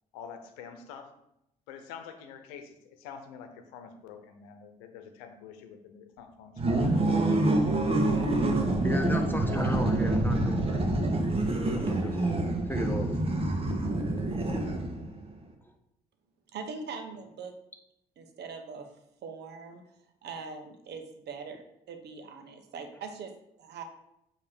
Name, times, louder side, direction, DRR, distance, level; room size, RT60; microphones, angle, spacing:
voice 1, 0.1-1.1 1.7-6.8, left 7 dB, 75° left, 7 dB, 0.9 m, -46 dB
sound 1, 6.6-15.1, right 2 dB, 30° right, 1.6 m, -27 dB
voice 2, 8.8-10.8 11.7-12.4 12.7-13.1, left 1 dB, 10° left, 3 dB, 1.3 m, -33 dB
voice 3, 16.5-17.5 18.2-18.9 19.2-19.8 20.2-23.8, right 5 dB, 55° right, 6 dB, 1.2 m, -42 dB
8.4 x 3.2 x 6.5 m, 0.80 s
hypercardioid pair, 45°, 20 cm